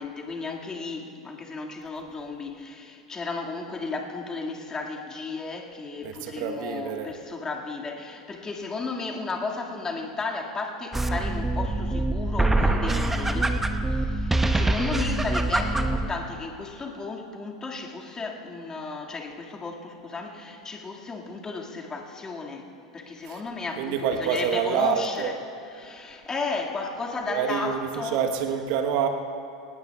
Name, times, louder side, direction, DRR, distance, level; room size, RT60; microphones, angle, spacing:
voice 1, 0.0-13.6 13.9-22.7 22.9-25.4 25.7-28.3, left 3 dB, 20° left, 2.1 m, -34 dB
voice 2, 6.0-7.1 23.2-23.4 23.8-25.3 27.3-29.1, right 7 dB, 55° right, 1.2 m, -27 dB
sound 1, 10.9-16.1, right 2 dB, 10° right, 1.0 m, -24 dB
24.5 x 19.0 x 2.4 m
figure-of-eight pair, 85°, 3 cm